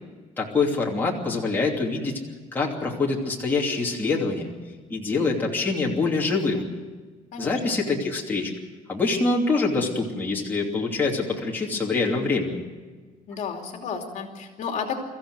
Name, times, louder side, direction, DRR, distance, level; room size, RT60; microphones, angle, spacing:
voice 1, 0.4-2.2 2.5-4.5 4.9-6.7 7.4-8.5 8.9-12.6, left 3 dB, 15° left, -3 dB, 2.8 m, -25 dB
voice 2, 7.3-7.8 13.3-15.0, left 6 dB, 55° left, 3 dB, 2.9 m, -32 dB
24.0 x 15.0 x 8.1 m, 1.4 s
cardioid pair, 170°, 15 cm